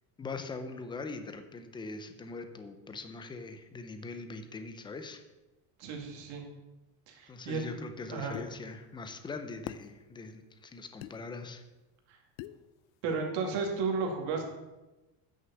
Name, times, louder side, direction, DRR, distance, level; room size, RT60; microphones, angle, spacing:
voice 1, 0.2-5.2 7.3-11.6, left 3 dB, 10° left, 7 dB, 0.5 m, -42 dB
voice 2, 5.8-6.4 7.1-7.6 8.1-8.4 13.0-14.4, right 4 dB, 85° right, 2 dB, 2.5 m, -33 dB
sound 1, 8.3-8.5 9.7-9.9 11.0-11.1 12.4-12.6, left 15 dB, 80° left, 0.6 m, -41 dB
9.3 x 6.4 x 6.9 m, 1.1 s
cardioid pair, 170°, 46 cm